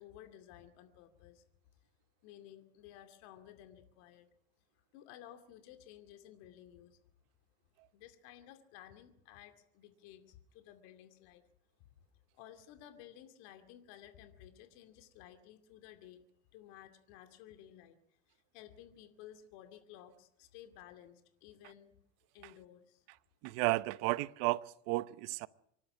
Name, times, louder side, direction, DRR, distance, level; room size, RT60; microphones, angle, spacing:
voice 1, 0.0-1.4 2.2-4.3 4.9-7.0 7.9-11.4 12.3-16.3 16.5-21.9 22.3-23.1, left 11 dB, 70° left, 2.4 m, -55 dB
voice 2, 23.4-25.5, right 21 dB, 70° right, 0.9 m, -33 dB
25.5 x 12.0 x 9.7 m
supercardioid pair, 110°, 29 cm